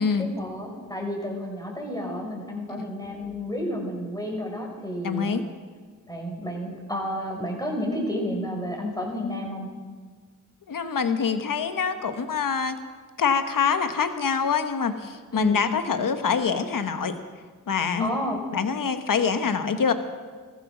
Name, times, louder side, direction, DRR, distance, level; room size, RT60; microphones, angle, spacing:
voice 1, 0.0-5.4 6.1-9.7 15.3-15.6 18.0-18.4, left 1 dB, 10° left, 0 dB, 5.7 m, -31 dB
voice 2, 5.0-5.4 10.7-12.8 13.2-17.2 17.7-18.1 18.5-19.9, left 6 dB, 80° left, 9 dB, 1.1 m, -25 dB
16.0 x 14.5 x 6.1 m, 1.5 s
cardioid pair, 45°, 32 cm